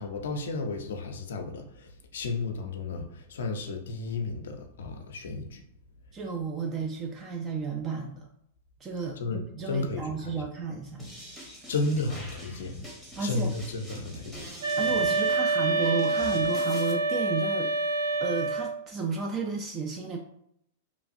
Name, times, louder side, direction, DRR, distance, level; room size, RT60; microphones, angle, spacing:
voice 1, 0.0-5.6 9.2-10.4 11.7-12.8 13.2-14.5, left 3 dB, 80° left, 4 dB, 0.4 m, -33 dB
voice 2, 6.1-8.3 8.8-9.2 9.6-11.0 13.2-13.5 14.8-17.7 18.2-20.2, right 4 dB, 25° right, 2 dB, 0.3 m, -32 dB
sound 1, 11.0-16.9, equal, 10° right, 0.8 m, -44 dB
sound 2, 14.6-18.8, right 3 dB, 70° right, 0.9 m, -26 dB
3.0 x 2.3 x 2.6 m, 0.74 s
hypercardioid pair, 125°, 0 cm